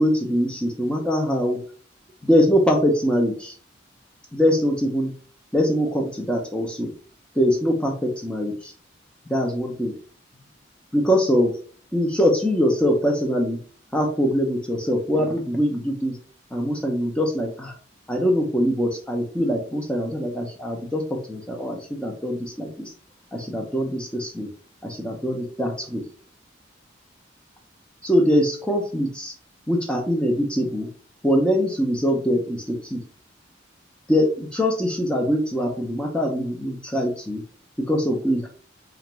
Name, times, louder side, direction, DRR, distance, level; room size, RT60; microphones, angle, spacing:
voice 1, 0.0-1.6 2.2-3.5 4.3-5.1 5.5-6.9 7.4-8.7 9.3-10.0 10.9-11.5 11.9-13.6 13.9-16.2 16.5-17.7 18.1-21.0 21.3-22.9 23.3-24.5 24.8-26.0 28.0-29.3 29.7-30.9 31.2-33.0 34.1-37.4 37.9-38.5, equal, 5° left, 0 dB, 0.5 m, -23 dB
2.5 x 2.2 x 3.0 m, 0.43 s
head